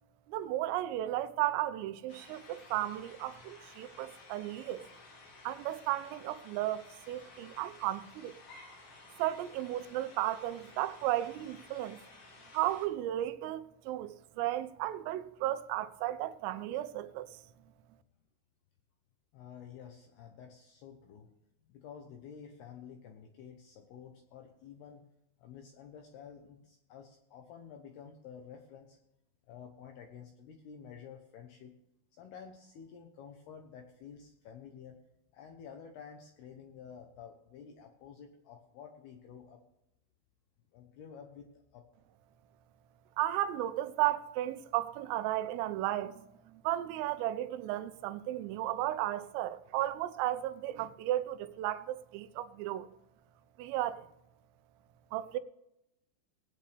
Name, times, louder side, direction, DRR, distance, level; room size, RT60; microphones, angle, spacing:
voice 1, 0.3-4.8 5.4-8.3 9.2-12.0 12.5-17.3 43.2-52.9 53.6-54.1 55.1-55.4, right 14 dB, 85° right, 3.3 m, -34 dB
sound 1, 2.1-12.9, left 3 dB, 50° left, 3.3 m, -55 dB
voice 2, 19.3-21.3 21.7-25.1 25.4-29.0 29.5-31.8 32.1-35.0 35.3-39.6 40.7-41.8, left 7 dB, 80° left, 2.4 m, -51 dB
20.0 x 8.7 x 3.3 m
omnidirectional pair, 5.8 m